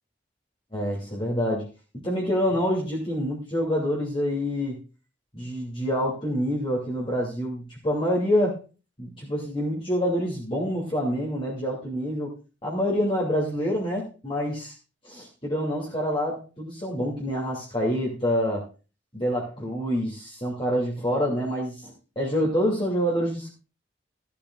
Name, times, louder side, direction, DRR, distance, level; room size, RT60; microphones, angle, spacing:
voice 1, 0.7-1.7 1.9-4.8 5.3-8.6 9.0-12.3 12.6-14.7 15.0-18.7 19.1-23.5, equal, 25° left, -4 dB, 2.6 m, -27 dB
15.5 x 12.0 x 2.4 m, 0.33 s
head